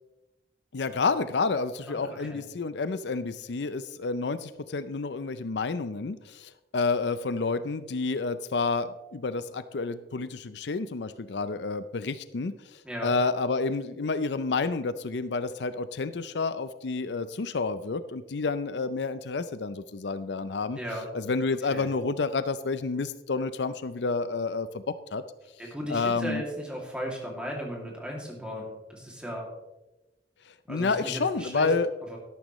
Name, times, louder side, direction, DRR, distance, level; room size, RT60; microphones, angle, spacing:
voice 1, 0.7-20.8 21.1-24.8 25.1-25.2 25.9-26.4 30.5-31.9, left 4 dB, 75° left, 13 dB, 0.5 m, -29 dB
voice 2, 1.9-2.4 12.8-13.1 20.7-21.1 21.7-21.9 25.6-29.5 30.7-31.7 32.1-32.2, equal, 5° right, -1 dB, 2.4 m, -36 dB
12.5 x 11.5 x 3.1 m, 0.99 s
head